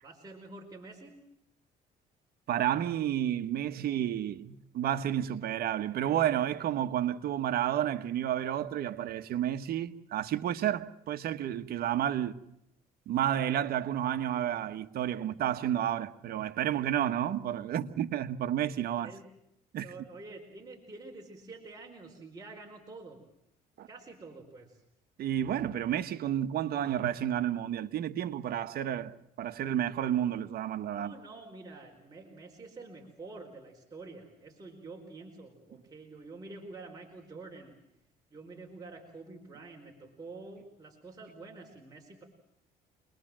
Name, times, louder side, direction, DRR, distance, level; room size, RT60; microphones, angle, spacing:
voice 1, 0.0-1.2 19.0-19.2 19.8-23.2 23.9-24.8 30.9-37.7 38.3-42.2, right 3 dB, 20° right, 4.7 m, -48 dB
voice 2, 2.5-12.4 13.1-19.1 19.7-19.9 23.8-23.9 25.2-31.1, right 11 dB, 65° right, 1.4 m, -31 dB
28.0 x 21.0 x 7.6 m
cardioid pair, 110°, 17 cm